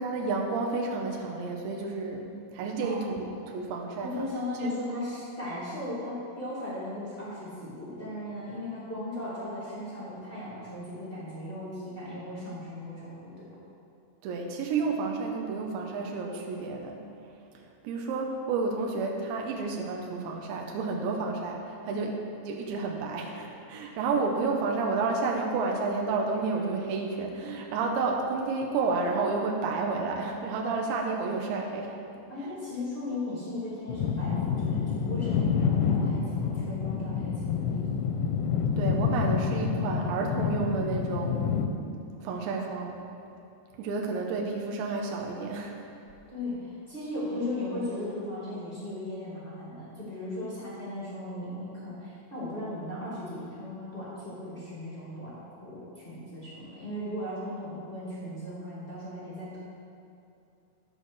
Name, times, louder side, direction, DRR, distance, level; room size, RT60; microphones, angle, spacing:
voice 1, 0.0-4.3 4.6-4.7 14.2-17.0 17.8-22.2 22.5-32.0 38.8-41.4 42.2-43.0 43.8-45.8, right 4 dB, 75° right, 1 dB, 2.9 m, -30 dB
voice 2, 2.8-3.3 4.0-13.4 20.9-21.1 21.8-22.0 32.3-37.8 46.3-59.7, left 1 dB, 25° left, -9 dB, 1.3 m, -37 dB
sound 1, 33.9-41.7, left 6 dB, 85° left, 3.1 m, -28 dB
10.5 x 6.8 x 6.4 m, 2.7 s
omnidirectional pair, 5.6 m